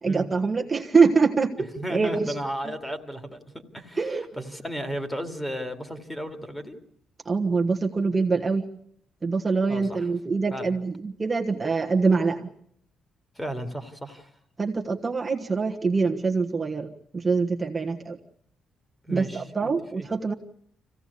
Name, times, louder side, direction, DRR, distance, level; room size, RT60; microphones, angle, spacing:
voice 1, 0.0-2.3 4.0-4.3 7.2-8.6 9.2-12.5 14.6-18.2 19.1-20.3, right 4 dB, 25° right, 1 dB, 1.4 m, -24 dB
voice 2, 1.7-6.8 9.7-10.1 10.5-10.7 13.3-14.3 19.0-20.1, equal, 10° left, 8 dB, 2.4 m, -34 dB
25.0 x 16.5 x 8.4 m, 0.69 s
cardioid pair, 90°, 0 cm